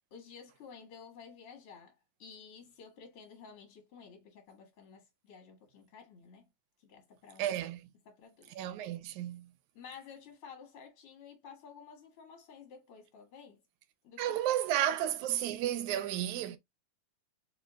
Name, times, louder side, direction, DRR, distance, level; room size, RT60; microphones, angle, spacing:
voice 1, 0.1-6.5 6.8-7.6 8.1-8.5 9.7-13.6 14.0-14.4, left 6 dB, 50° left, 2.0 m, -52 dB
voice 2, 7.4-7.8 8.6-9.4 14.2-16.6, right 11 dB, 80° right, 1.9 m, -32 dB
5.0 x 2.8 x 3.6 m
omnidirectional pair, 3.6 m